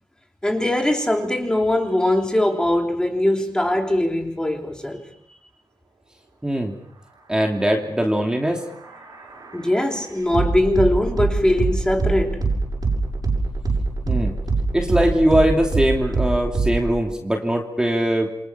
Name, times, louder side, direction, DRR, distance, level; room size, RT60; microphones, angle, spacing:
voice 1, 0.4-5.1 9.5-12.4, left 1 dB, 10° left, 3.3 m, -21 dB
voice 2, 6.4-6.7 7.3-8.6 14.1-14.4 14.7-18.3, right 1 dB, 10° right, 2.9 m, -21 dB
sound 1, 8.4-17.0, right 3 dB, 60° right, 6.7 m, -24 dB
28.5 x 25.0 x 5.8 m
wide cardioid pair, 120°, 8 cm